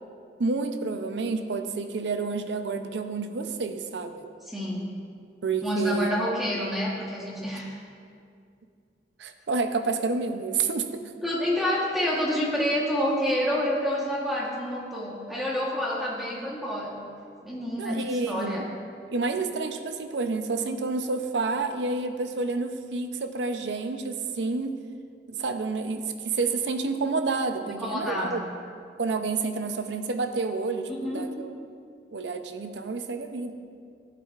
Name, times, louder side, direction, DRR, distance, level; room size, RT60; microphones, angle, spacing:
voice 1, 0.4-4.3 5.4-6.1 9.2-11.1 17.8-18.7 19.1-24.7 25.3-28.4 29.0-31.6 32.1-33.5, right 4 dB, 90° right, 8 dB, 0.6 m, -29 dB
voice 2, 4.5-4.9 5.6-7.8 11.2-17.0 17.4-18.7 27.7-28.5 30.9-31.2, left 1 dB, ahead, -5 dB, 1.1 m, -28 dB
13.0 x 8.3 x 2.4 m, 2.3 s
head